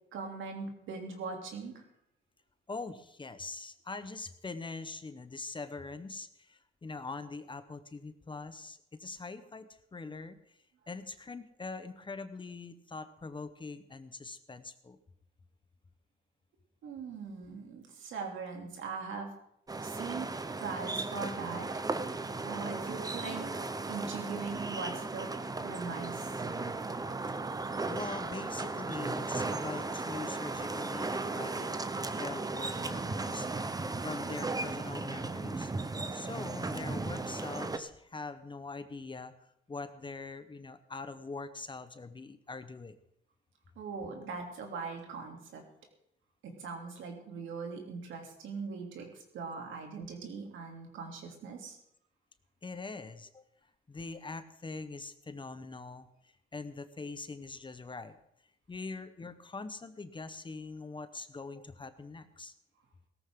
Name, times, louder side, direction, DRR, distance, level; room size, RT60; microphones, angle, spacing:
voice 1, 0.1-1.8 16.8-19.3 19.8-21.7 22.4-25.3 25.6-26.4 43.8-45.6 46.4-51.8, right 4 dB, 75° right, 2 dB, 2.9 m, -41 dB
voice 2, 2.7-10.6 10.9-15.0 27.9-31.8 32.1-33.7 34.0-35.7 36.1-39.3 39.7-43.0 52.6-53.4 53.9-58.2 58.7-62.5, left 3 dB, 25° left, 11 dB, 1.0 m, -43 dB
sound 1, 19.7-37.8, right 3 dB, 20° right, 0.9 m, -36 dB
17.0 x 14.0 x 3.8 m, 0.75 s
cardioid pair, 90°, 20 cm